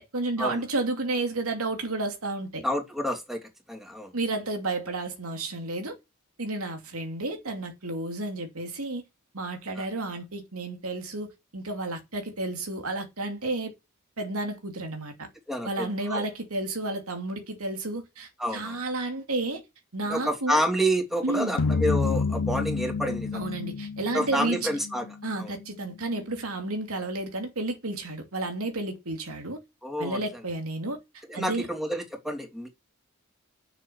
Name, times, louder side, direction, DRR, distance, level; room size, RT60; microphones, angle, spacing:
voice 1, 0.0-2.6 4.1-5.9 6.4-9.0 9.3-13.7 14.2-15.3 15.6-19.6 19.9-20.6 21.2-21.6 23.3-24.7 25.2-29.6 30.0-31.0 31.3-31.7, right 2 dB, 85° right, 2.6 m, -31 dB
voice 2, 2.6-3.4 3.7-4.1 9.8-9.9 15.5-16.3 18.4-18.8 20.1-23.4 24.1-25.1 25.4-25.5 29.8-30.3 31.3-32.7, equal, ahead, 3.0 m, -29 dB
sound 1, 21.6-26.0, left 4 dB, 70° left, 0.6 m, -30 dB
8.6 x 6.7 x 6.7 m
head